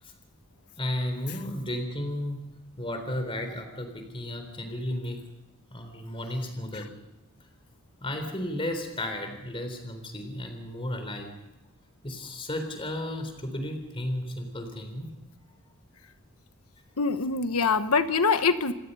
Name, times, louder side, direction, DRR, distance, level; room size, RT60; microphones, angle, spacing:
voice 1, 0.7-2.4 2.8-5.2 5.7-6.9 8.0-11.3 12.0-15.1, left 1 dB, 25° left, 6 dB, 3.7 m, -33 dB
voice 2, 17.0-18.7, left 4 dB, 90° left, 10 dB, 1.2 m, -24 dB
28.0 x 19.5 x 5.5 m, 0.95 s
head